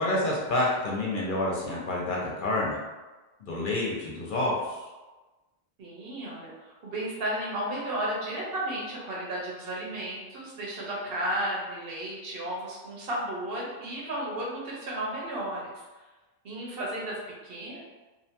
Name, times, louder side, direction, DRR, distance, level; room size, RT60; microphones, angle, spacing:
voice 1, 0.0-2.8 3.4-4.9, left 1 dB, 60° left, -3 dB, 0.7 m, -28 dB
voice 2, 5.8-15.7 16.4-17.8, right 1 dB, 70° right, -3 dB, 0.9 m, -33 dB
2.6 x 2.2 x 2.8 m, 1.2 s
omnidirectional pair, 1.0 m